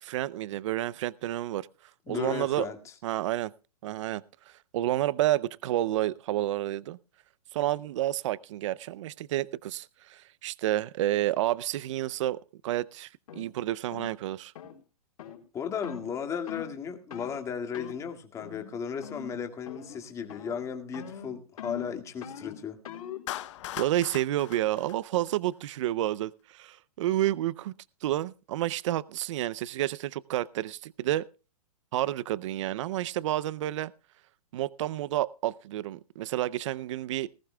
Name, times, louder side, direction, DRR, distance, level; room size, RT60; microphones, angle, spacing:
voice 1, 0.0-1.7 2.1-2.7 3.0-3.5 3.8-7.0 7.5-14.5 23.8-27.7 28.0-31.3 31.9-33.9 34.5-37.3, right 14 dB, 55° right, 0.5 m, -30 dB
voice 2, 2.1-2.8 15.5-22.8, left 7 dB, 15° left, 1.9 m, -35 dB
sound 1, 13.3-13.5 13.9-14.1 14.5-14.8 15.2-15.4 15.8-16.1 16.5-16.7 17.1-17.4 17.7-18.0 18.4-18.7 19.0-19.4 19.7-20.0 20.3-20.6 20.9-23.3, left 8 dB, 65° left, 4.2 m, -42 dB
Clapping, 23.3-25.7, left 13 dB, 50° left, 0.9 m, -39 dB
20.0 x 15.0 x 2.2 m
hypercardioid pair, 150°, 19 cm